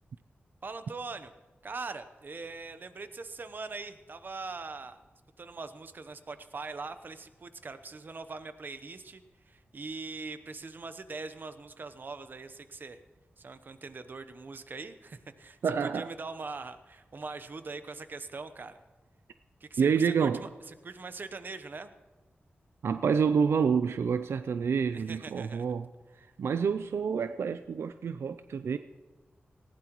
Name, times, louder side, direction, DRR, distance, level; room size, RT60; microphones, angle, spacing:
voice 1, 0.6-1.3 1.6-5.0 5.4-13.0 13.4-18.8 19.6-21.9 24.9-25.6, right 3 dB, 50° right, 0.8 m, -42 dB
voice 2, 15.6-16.1 19.8-20.5 22.8-25.9 26.2-28.8, right 6 dB, 85° right, 0.4 m, -28 dB
19.5 x 15.5 x 3.0 m
wide cardioid pair, 85°, 4 cm